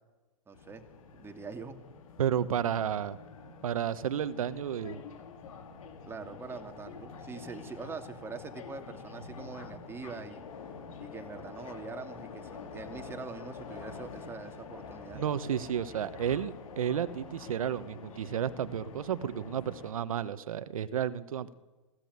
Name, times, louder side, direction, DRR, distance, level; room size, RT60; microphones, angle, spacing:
sound 1, 0.5-19.9, left 5 dB, 75° left, 4.4 m, -47 dB
voice 1, 0.5-0.8 1.1-1.8 6.1-10.4 11.0-15.2, right 4 dB, 15° right, 5 dB, 2.7 m, -43 dB
voice 2, 2.2-3.2 3.6-5.0 15.1-21.5, right 9 dB, 80° right, 12 dB, 1.3 m, -32 dB
22.0 x 16.5 x 9.6 m, 1.2 s
hypercardioid pair, 130°, 18 cm